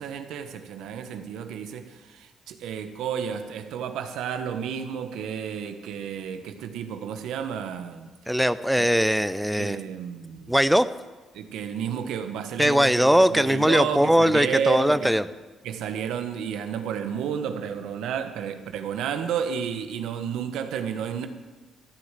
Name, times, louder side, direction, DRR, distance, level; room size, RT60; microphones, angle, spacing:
voice 1, 0.0-8.1 8.8-8.9 9.6-10.6 11.3-15.1 15.6-21.3, right 8 dB, 85° right, 8 dB, 1.3 m, -31 dB
voice 2, 8.3-9.8 10.5-10.9 12.6-15.2, equal, ahead, 13 dB, 0.5 m, -20 dB
13.5 x 9.8 x 7.5 m, 1.3 s
cardioid pair, 90°, 0 cm